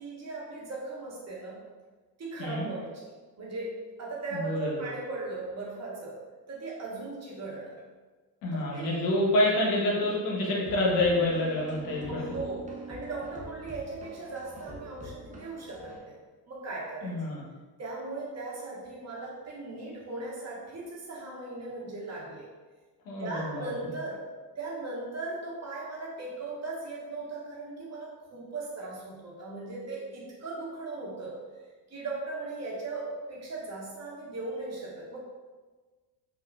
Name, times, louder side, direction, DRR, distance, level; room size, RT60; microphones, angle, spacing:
voice 1, 0.0-1.6 2.2-3.1 3.4-6.2 6.5-7.8 8.5-9.0 12.1-16.2 16.5-17.2 17.8-22.5 23.2-24.2 24.6-31.4 31.9-35.2, right 3 dB, 35° right, -4 dB, 1.0 m, -38 dB
voice 2, 4.3-4.8 8.4-12.2 17.0-17.4 23.0-23.7, left 1 dB, 80° left, -3 dB, 0.9 m, -27 dB
sound 1, 10.7-16.0, right 2 dB, 15° right, 0.7 m, -44 dB
3.7 x 2.4 x 2.2 m, 1.3 s
hypercardioid pair, 55°, 48 cm